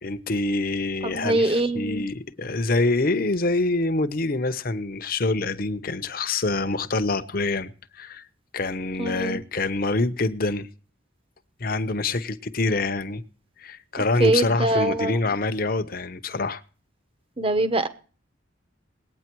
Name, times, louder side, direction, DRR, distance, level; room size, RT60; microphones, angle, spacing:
voice 1, 0.0-8.2 8.5-10.7 11.6-13.2 13.6-16.6, left 2 dB, 50° left, 0.9 m, -26 dB
voice 2, 1.0-2.0 9.0-9.4 14.2-15.2 17.4-17.9, right 2 dB, 30° right, 1.0 m, -23 dB
19.5 x 9.3 x 4.6 m
head